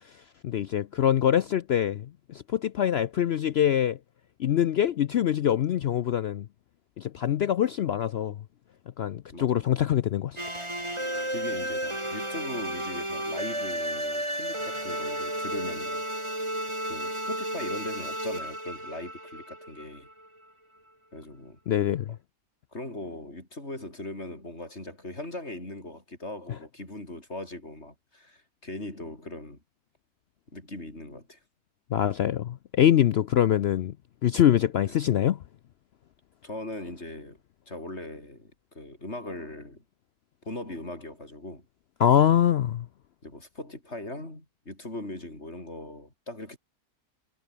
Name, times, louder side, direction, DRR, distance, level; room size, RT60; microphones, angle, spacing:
voice 1, 0.4-4.0 4.4-6.5 7.0-8.4 9.0-10.4 21.7-22.2 31.9-33.9 34.2-35.4 42.0-42.9, left 10 dB, 70° left, 0.6 m, -24 dB
voice 2, 9.3-9.7 11.3-16.0 16.8-20.1 21.1-21.6 22.7-29.6 30.5-31.4 34.8-34.9 36.4-37.4 37.7-39.8 40.4-41.6 42.2-42.5 43.2-46.6, left 1 dB, 45° left, 6.8 m, -40 dB
sound 1, 10.4-20.3, right 1 dB, 15° right, 5.3 m, -33 dB
omnidirectional pair, 1.6 m